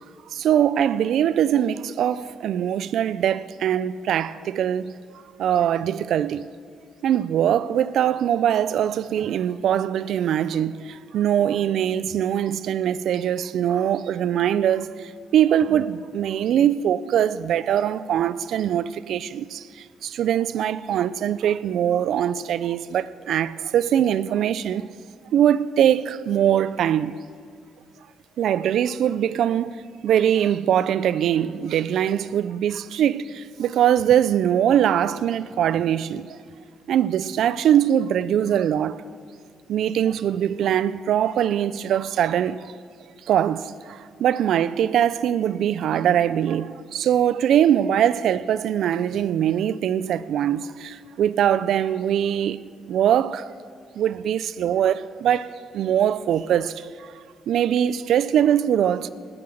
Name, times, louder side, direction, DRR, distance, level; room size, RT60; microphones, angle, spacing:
voice 1, 0.3-4.9 5.4-6.5 7.0-24.9 25.3-27.2 28.4-36.4 36.9-39.0 39.7-42.7 43.3-52.6 52.9-53.5 54.0-57.1 57.5-59.1, right 10 dB, 75° right, 0.4 m, -22 dB
13.5 x 9.9 x 6.4 m
cardioid pair, 90°, 0 cm